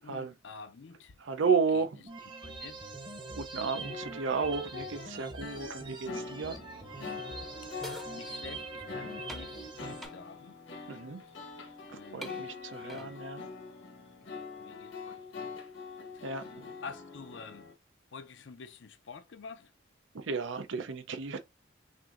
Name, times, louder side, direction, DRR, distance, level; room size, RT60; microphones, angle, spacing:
voice 1, 0.0-1.2 1.5-1.9 2.4-2.8 7.6-10.6 11.3-11.6 11.9-12.5 12.8-13.1 14.6-15.6 16.1-16.3 16.8-17.7 18.1-19.7, left 5 dB, 65° left, 0.5 m, -49 dB
voice 2, 1.2-1.9 3.4-6.6 10.9-11.2 12.1-13.5 16.2-16.7 20.1-21.4, right 5 dB, 75° right, 0.6 m, -33 dB
sound 1, 2.1-10.1, right 3 dB, 25° right, 0.9 m, -43 dB
sound 2, 3.8-17.7, left 4 dB, 85° left, 1.2 m, -44 dB
sound 3, 7.8-8.1 9.3-9.5 10.0-10.2 11.4-11.5 12.2-13.1, equal, ahead, 0.6 m, -45 dB
6.0 x 2.6 x 2.5 m
head